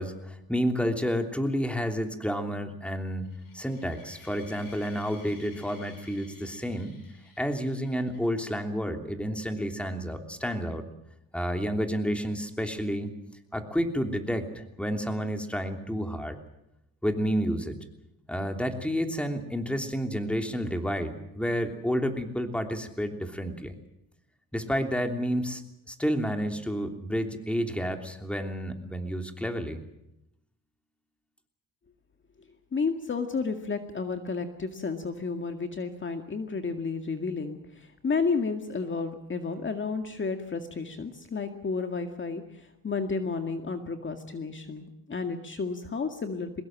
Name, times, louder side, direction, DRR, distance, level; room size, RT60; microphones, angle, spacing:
voice 1, 0.0-3.3 3.5-7.0 7.4-10.9 11.3-13.1 13.5-16.4 17.0-17.8 18.3-23.7 24.5-25.6 25.9-29.8, equal, 5° left, 5 dB, 3.1 m, -30 dB
sound 1, 3.2-8.5, left 4 dB, 70° left, 7.6 m, -54 dB
voice 2, 32.7-46.6, left 4 dB, 35° left, 6 dB, 2.1 m, -32 dB
23.5 x 20.5 x 7.5 m, 0.85 s
cardioid pair, 110°, 35 cm